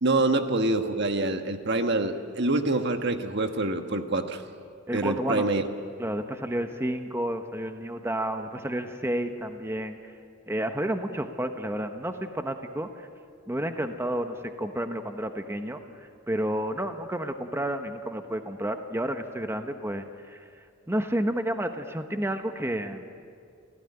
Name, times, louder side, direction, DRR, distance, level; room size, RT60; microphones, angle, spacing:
voice 1, 0.0-4.4 4.9-5.6, right 2 dB, 60° right, 7 dB, 1.5 m, -26 dB
voice 2, 4.9-5.5 6.0-10.0 10.5-13.1 13.5-15.8 16.3-20.5 20.9-23.0, right 1 dB, 15° right, 6 dB, 1.1 m, -31 dB
27.5 x 16.5 x 9.9 m, 2.2 s
head